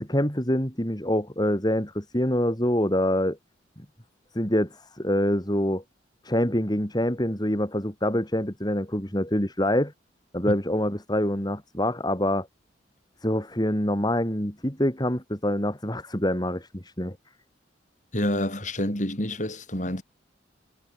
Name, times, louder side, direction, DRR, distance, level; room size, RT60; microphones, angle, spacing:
voice 1, 0.0-3.4 3.8-3.9 4.3-5.8 6.2-9.9 10.3-12.5 13.2-17.2, left 1 dB, 20° left, 4.2 m, -25 dB
voice 2, 18.1-20.0, left 1 dB, 40° left, 7.5 m, -28 dB
head